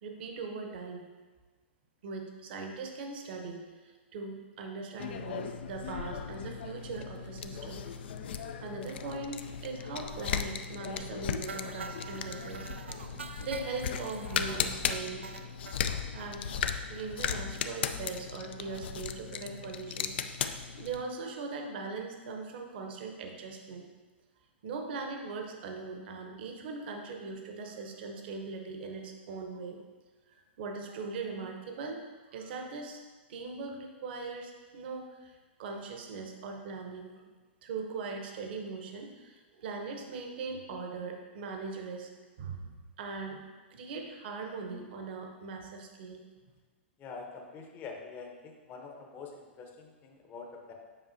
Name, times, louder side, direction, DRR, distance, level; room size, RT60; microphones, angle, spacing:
voice 1, 0.0-1.1 2.0-7.9 8.3-12.7 13.4-15.3 16.1-16.5 16.9-23.9 24.6-29.8 30.6-32.0 32.3-33.0 33.3-37.1 37.6-42.1 42.4-43.4 43.7-46.2, right 4 dB, 55° right, 3 dB, 1.0 m, -40 dB
sound 1, 5.0-21.0, left 7 dB, 60° left, 0.4 m, -37 dB
sound 2, 11.5-15.8 16.2-16.3 16.6-16.7 16.9-17.1 17.4-17.5, right 4 dB, 75° right, 0.4 m, -44 dB
voice 2, 47.0-50.7, left 4 dB, 30° left, 1 dB, 0.9 m, -45 dB
7.5 x 5.4 x 2.7 m, 1.3 s
figure-of-eight pair, 105°, 6 cm